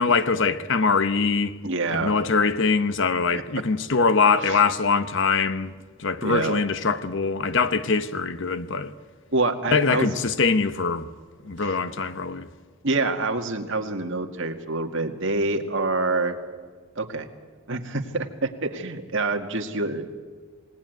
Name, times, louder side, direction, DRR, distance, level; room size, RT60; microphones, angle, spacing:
voice 1, 0.0-1.5 1.9-5.7 6.0-8.9 9.7-11.1 11.4-12.5, left 4 dB, 60° left, 1.1 m, -23 dB
voice 2, 1.6-2.2 3.3-3.4 4.5-4.6 6.2-6.6 9.3-10.1 11.6-11.8 12.8-16.3 17.0-17.3 17.7-20.1, right 3 dB, 60° right, 2.0 m, -26 dB
28.0 x 18.5 x 9.3 m
head